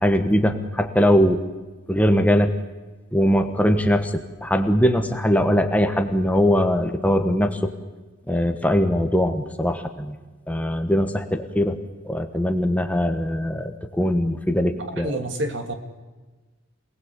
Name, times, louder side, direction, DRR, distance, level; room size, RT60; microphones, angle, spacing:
voice 1, 0.0-1.4 1.9-2.5 3.1-7.7 8.3-10.2 10.5-11.8 12.0-15.1, equal, 5° left, 7 dB, 1.3 m, -21 dB
voice 2, 14.8-15.7, right 1 dB, 65° right, 6 dB, 2.6 m, -28 dB
26.5 x 19.0 x 8.3 m, 1.2 s
head